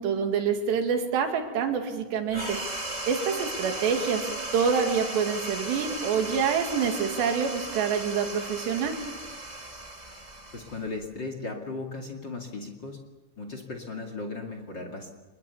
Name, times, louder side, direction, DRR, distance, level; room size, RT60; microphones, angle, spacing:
voice 1, 0.0-2.6 3.1-4.2 4.5-9.0, right 6 dB, 60° right, 4 dB, 4.1 m, -26 dB
sound 1, 2.3-11.2, right 1 dB, 15° right, 1.3 m, -36 dB
voice 2, 10.5-13.0 13.4-15.1, left 3 dB, 40° left, 4 dB, 1.7 m, -36 dB
26.5 x 21.0 x 7.2 m, 1.2 s
omnidirectional pair, 5.8 m